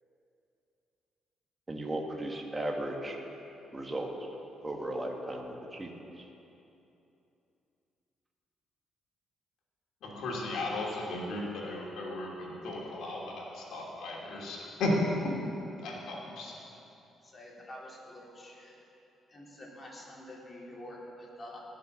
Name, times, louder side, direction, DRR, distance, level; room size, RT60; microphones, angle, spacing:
voice 1, 1.7-3.2 3.7-4.1 4.6-5.9, right 1 dB, 20° right, 1 dB, 1.8 m, -36 dB
voice 2, 10.0-15.0 15.8-16.5, left 1 dB, 75° left, -3 dB, 3.0 m, -35 dB
voice 3, 17.2-18.8 19.3-21.6, left 1 dB, 30° left, -4 dB, 3.6 m, -47 dB
19.0 x 6.6 x 6.6 m, 2.9 s
cardioid pair, 90°, 0 cm